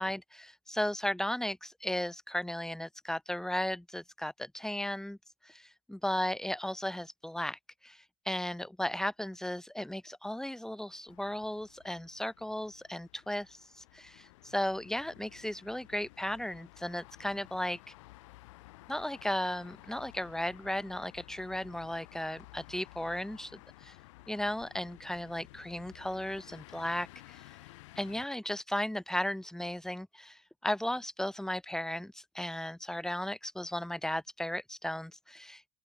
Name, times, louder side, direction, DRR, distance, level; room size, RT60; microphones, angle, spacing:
voice 1, 0.0-5.2 5.4-17.8 18.9-23.9 24.3-27.4 27.9-35.7, left 1 dB, 5° left, 1.6 m, -35 dB
sound 1, 11.1-28.3, left 20 dB, 80° left, 5.7 m, -55 dB
open air
supercardioid pair, 90°, 16 cm